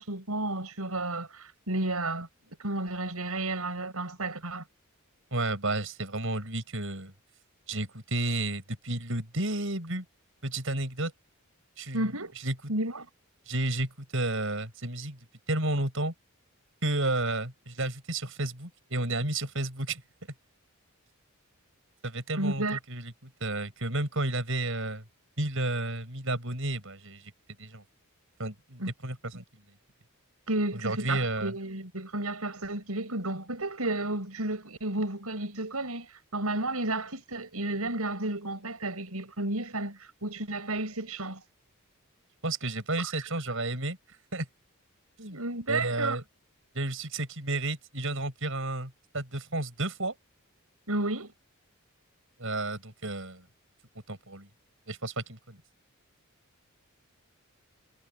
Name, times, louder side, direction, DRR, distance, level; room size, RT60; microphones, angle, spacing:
voice 1, 0.0-4.6 11.9-12.3 12.7-13.1 22.4-22.8 28.8-28.9 29.3-29.4 30.5-41.4 43.0-43.3 45.3-46.2 50.9-51.3, right 2 dB, 80° right, 5.7 m, -32 dB
voice 2, 5.3-7.1 7.7-10.0 10.4-11.1 11.8-12.1 12.4-12.5 13.5-15.2 15.5-16.1 16.8-20.0 22.0-23.1 23.4-25.0 25.4-27.3 27.6-27.8 28.4-29.4 30.7-31.5 42.4-44.0 44.3-44.5 45.2-45.4 45.7-46.2 46.7-50.1 52.4-53.4 54.1-54.5 54.9-55.6, right 2 dB, 60° right, 7.6 m, -32 dB
head